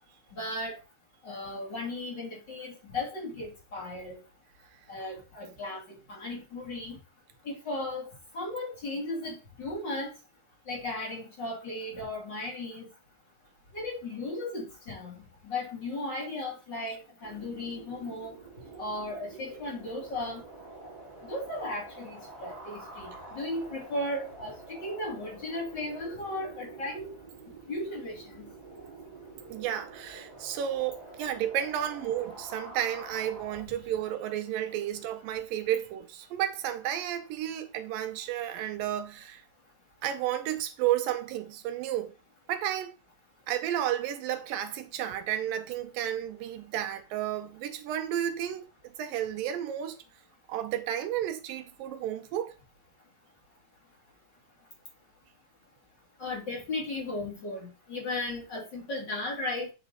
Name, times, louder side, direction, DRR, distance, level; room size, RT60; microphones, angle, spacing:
voice 1, 0.4-0.8 1.2-4.2 4.9-5.8 6.1-7.0 7.4-10.1 10.7-12.9 13.7-18.4 18.8-20.4 21.2-27.1 27.7-28.5 56.2-59.7, left 2 dB, 35° left, 2.5 m, -36 dB
sound 1, 17.2-33.6, right 2 dB, 20° right, 1.4 m, -47 dB
voice 2, 29.5-39.4 40.0-42.1 42.5-42.9 43.5-50.0 50.5-52.6, right 11 dB, 85° right, 2.4 m, -32 dB
8.1 x 4.5 x 3.9 m
omnidirectional pair, 4.1 m